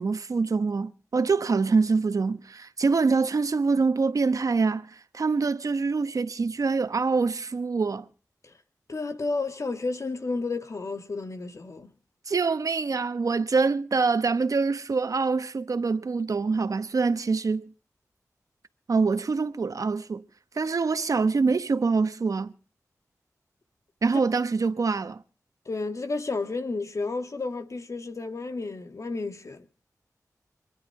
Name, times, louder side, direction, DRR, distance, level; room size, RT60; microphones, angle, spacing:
voice 1, 0.0-8.1 12.3-17.7 18.9-20.2 20.5-22.5 24.0-25.2, right 4 dB, 65° right, 1.1 m, -25 dB
voice 2, 8.9-11.9 25.7-29.7, left 3 dB, 55° left, 2.0 m, -31 dB
26.0 x 11.0 x 4.8 m
wide cardioid pair, 95°, 6 cm